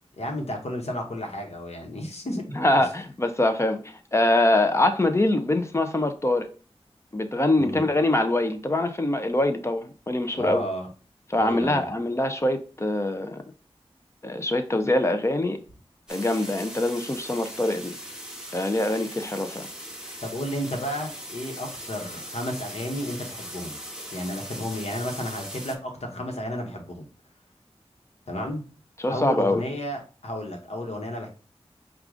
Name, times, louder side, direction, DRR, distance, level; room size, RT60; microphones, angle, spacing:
voice 1, 0.2-2.4 2.8-2.9 7.6-7.9 10.3-10.9 11.4-11.9 20.2-23.8 24.1-27.1 28.3-28.6 29.1-31.3, left 1 dB, 80° left, 1.0 m, -32 dB
voice 2, 2.5-6.5 7.1-10.6 11.3-13.4 14.2-15.6 16.1-18.0 18.5-19.7 29.0-29.6, left 1 dB, 25° left, 0.6 m, -24 dB
sound 1, 16.1-25.7, equal, 5° right, 0.9 m, -39 dB
4.7 x 2.4 x 3.7 m
wide cardioid pair, 70°, 11 cm